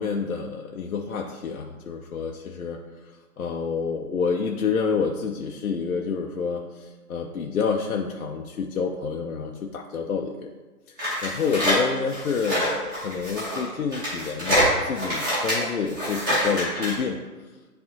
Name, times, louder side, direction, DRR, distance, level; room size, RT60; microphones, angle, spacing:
voice 1, 0.0-2.8 3.4-10.5 11.2-17.2, left 5 dB, 65° left, 2 dB, 0.7 m, -28 dB
sound 1, 11.0-17.0, equal, 15° right, 1.2 m, -25 dB
9.8 x 3.3 x 2.9 m, 1.2 s
hypercardioid pair, 165°, 46 cm